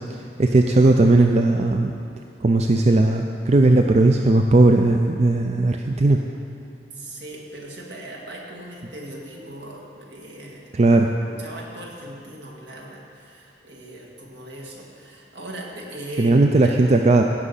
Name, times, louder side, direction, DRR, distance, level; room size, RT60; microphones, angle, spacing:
voice 1, 0.1-1.9 2.4-6.2 10.7-11.1 16.2-17.2, right 2 dB, 40° right, 3 dB, 0.5 m, -17 dB
voice 2, 6.9-10.6 11.3-16.8, right 1 dB, 70° right, -2 dB, 2.0 m, -38 dB
16.5 x 6.2 x 5.5 m, 2.6 s
head